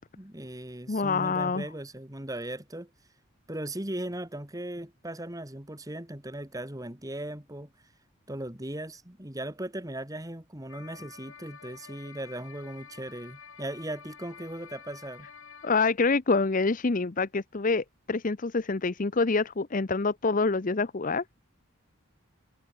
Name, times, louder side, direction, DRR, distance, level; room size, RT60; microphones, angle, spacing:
voice 1, 0.2-2.9 3.5-7.7 8.3-15.3, right 1 dB, 15° right, 2.2 m, -38 dB
voice 2, 0.9-1.6 15.6-21.2, left 4 dB, 40° left, 0.7 m, -26 dB
sound 1, 10.7-15.7, left 6 dB, 75° left, 2.8 m, -49 dB
head